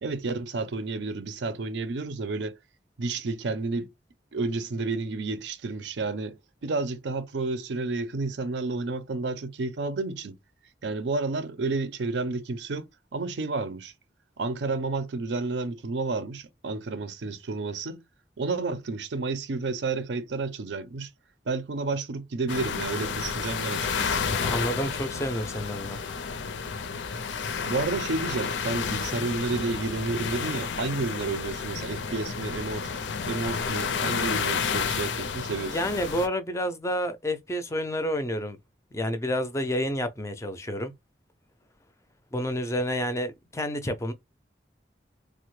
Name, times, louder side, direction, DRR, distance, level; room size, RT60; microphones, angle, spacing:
voice 1, 0.0-2.6 3.0-3.9 4.3-10.4 10.8-13.9 14.4-18.0 18.4-21.1 21.5-24.3 27.6-32.9 33.3-35.9, right 3 dB, 80° right, 0.5 m, -31 dB
sound 1, 22.5-36.3, left 6 dB, 90° left, 0.5 m, -31 dB
voice 2, 24.4-26.0 35.7-38.6 38.9-40.9 42.3-44.1, equal, 15° left, 0.4 m, -29 dB
3.3 x 2.1 x 3.1 m
head